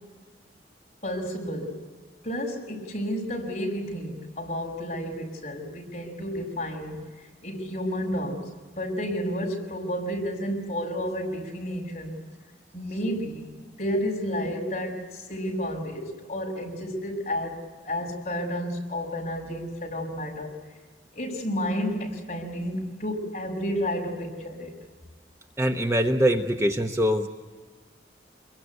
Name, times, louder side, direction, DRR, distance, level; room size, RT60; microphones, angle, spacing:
voice 1, 1.0-1.8 2.2-7.0 7.4-12.2 12.7-20.5 21.1-24.7, equal, 35° left, 0 dB, 5.7 m, -31 dB
voice 2, 25.6-27.3, equal, 15° right, 4 dB, 1.0 m, -23 dB
26.5 x 22.5 x 8.1 m, 1.4 s
head